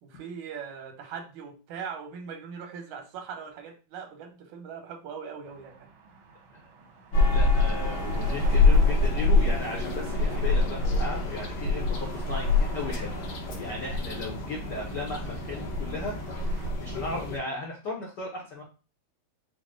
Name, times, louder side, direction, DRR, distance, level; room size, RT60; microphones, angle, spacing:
voice 1, 0.0-5.9, right 6 dB, 90° right, 4 dB, 2.3 m, -40 dB
sound 1, 5.4-16.7, right 4 dB, 70° right, 1.2 m, -49 dB
sound 2, 7.1-17.4, left 3 dB, 65° left, 2.0 m, -25 dB
voice 2, 7.2-13.2 13.6-18.6, left 2 dB, 90° left, -2 dB, 0.9 m, -36 dB
5.7 x 2.2 x 3.7 m, 0.34 s
omnidirectional pair, 3.3 m